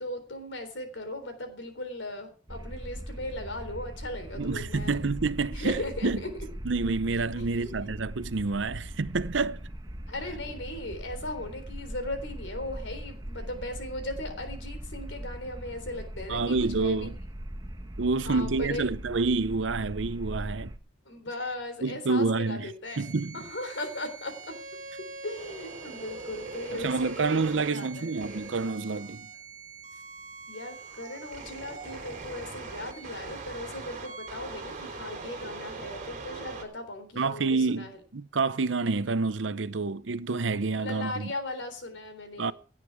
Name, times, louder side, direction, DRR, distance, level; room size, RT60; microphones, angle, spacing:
voice 1, 0.0-5.0 5.5-6.3 7.3-7.9 10.1-17.1 18.2-18.8 21.1-23.0 23.3-24.5 25.2-28.1 30.5-38.0 40.7-42.5, left 1 dB, 80° left, 3.7 m, -38 dB
sound 1, 2.5-20.8, right 1 dB, 20° right, 1.2 m, -40 dB
voice 2, 4.4-6.2 6.6-9.6 16.3-17.2 18.0-20.7 21.8-22.7 23.0-23.4 26.7-29.3 37.2-41.3 42.4-42.5, right 3 dB, 85° right, 0.7 m, -28 dB
sound 2, 22.8-36.6, right 3 dB, 45° right, 3.4 m, -42 dB
17.5 x 9.0 x 4.8 m
head